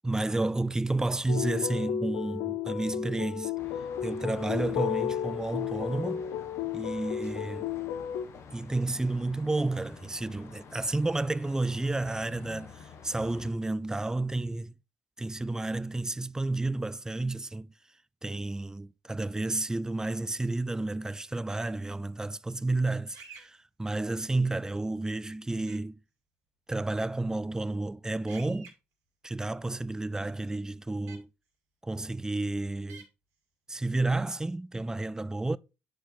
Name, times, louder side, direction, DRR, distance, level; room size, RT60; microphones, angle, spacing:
voice 1, 0.0-3.5 4.0-6.2 6.7-7.7 8.5-14.7 15.2-17.7 18.2-26.0 26.7-28.7 29.2-31.3 31.8-33.1 33.7-35.6, right 2 dB, 10° right, 0.4 m, -31 dB
Soft suspense music, 1.3-8.3, left 9 dB, 75° left, 0.6 m, -33 dB
sound 1, 3.6-13.5, left 5 dB, 55° left, 1.2 m, -49 dB
sound 2, 23.1-23.5 25.7-25.8 28.3-28.7 31.1-31.2 32.9-33.0, right 5 dB, 70° right, 2.1 m, -48 dB
8.3 x 4.7 x 4.2 m
hypercardioid pair, 60°, 6 cm